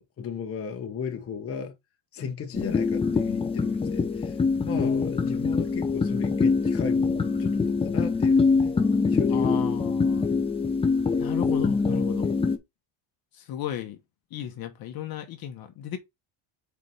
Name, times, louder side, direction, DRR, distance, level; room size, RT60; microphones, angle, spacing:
voice 1, 0.0-1.8 2.1-8.8 9.1-9.5, left 6 dB, 30° left, 1.2 m, -36 dB
sound 1, 2.5-12.6, left 4 dB, 10° left, 0.7 m, -24 dB
voice 2, 4.7-5.5 9.3-10.3 11.1-12.3 13.3-14.0 14.3-16.0, left 9 dB, 50° left, 1.1 m, -35 dB
4.9 x 4.7 x 5.4 m
cardioid pair, 170°, 46 cm